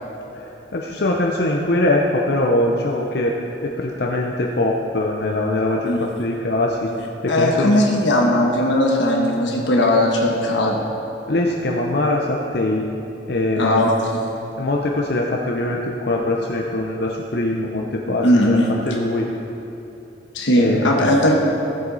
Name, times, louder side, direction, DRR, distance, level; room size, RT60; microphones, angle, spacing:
voice 1, 0.3-3.3 3.6-6.9 7.2-7.8 11.3-12.9 13.3-13.9 14.6-18.6 18.9-19.3 20.5-21.2, left 2 dB, 60° left, -1 dB, 0.7 m, -22 dB
voice 2, 7.3-10.8 13.6-14.3 18.2-18.7 20.3-21.3, left 1 dB, 75° left, -1 dB, 1.2 m, -18 dB
14.5 x 7.8 x 4.1 m, 3.0 s
head